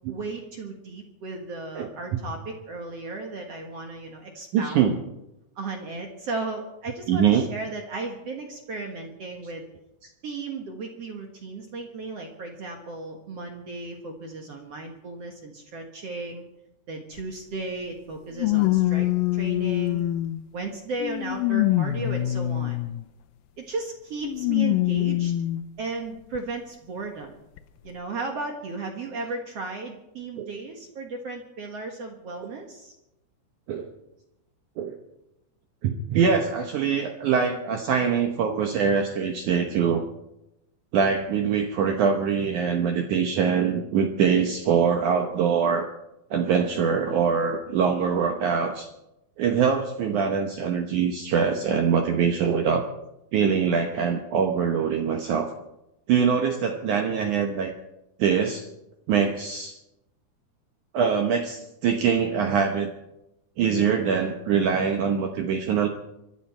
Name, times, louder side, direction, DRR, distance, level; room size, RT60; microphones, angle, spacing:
voice 1, 0.1-4.9 5.5-9.6 10.2-16.4 16.9-20.0 20.5-22.8 23.6-25.3 25.8-27.3 27.8-32.9, right 3 dB, 60° right, 3 dB, 1.7 m, -35 dB
voice 2, 4.5-5.0 7.1-7.5 30.4-30.5 33.7-33.9 34.8-35.0 35.8-40.0 40.9-45.9 46.3-48.9 49.4-52.9 53.3-55.5 56.1-57.7 58.2-58.7 59.1-59.8 60.9-62.9 63.6-65.9, right 6 dB, 75° right, 4 dB, 1.8 m, -23 dB
sound 1, 17.2-17.3 18.4-20.4 21.0-23.0 24.2-25.6 26.4-26.5 27.6-27.7, left 15 dB, 90° left, 2.0 m, -24 dB
25.5 x 11.5 x 4.4 m, 0.90 s
omnidirectional pair, 4.8 m